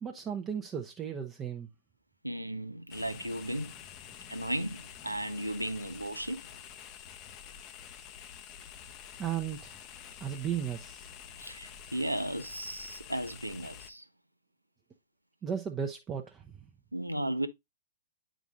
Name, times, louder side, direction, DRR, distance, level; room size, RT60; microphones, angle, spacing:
voice 1, 0.0-1.7 9.2-9.8 10.2-11.1 15.4-16.6, right 8 dB, 20° right, 0.7 m, -35 dB
voice 2, 2.2-3.7 4.3-6.4 11.4-14.0 16.9-17.5, right 1 dB, 90° right, 0.7 m, -35 dB
sound 1, 2.9-13.9, left 8 dB, 30° left, 0.7 m, -48 dB
9.1 x 5.1 x 2.4 m
figure-of-eight pair, 110°, 0 cm